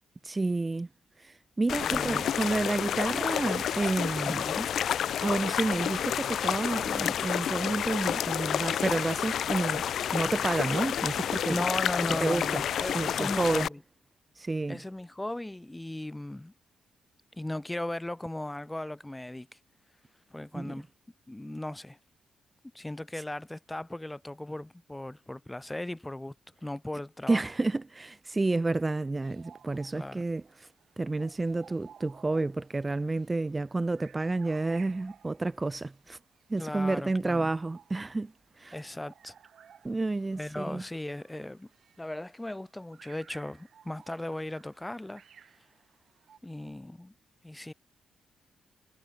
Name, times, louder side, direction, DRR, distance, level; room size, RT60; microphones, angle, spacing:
voice 1, 0.2-0.9 1.2-4.4 5.2-9.8 10.1-11.6 12.2-12.6 12.9-13.7 14.4-14.8 20.5-20.7 27.3-30.7 31.0-36.2 36.5-38.3 38.6-38.8 39.8-40.8, right 2 dB, 20° right, 0.9 m, -30 dB
sound 1, 1.7-13.7, left 9 dB, 70° left, 0.5 m, -30 dB
voice 2, 1.8-2.4 4.2-4.7 11.5-13.8 14.7-16.5 17.4-19.5 20.3-20.9 21.3-22.0 22.7-26.3 26.6-27.4 29.9-30.2 36.6-37.5 38.7-39.3 40.3-41.7 42.0-45.2 46.4-47.1 47.4-47.7, left 1 dB, 10° left, 1.5 m, -37 dB
sound 2, 29.2-46.4, right 8 dB, 60° right, 4.6 m, -58 dB
cardioid pair, 85°, 0 cm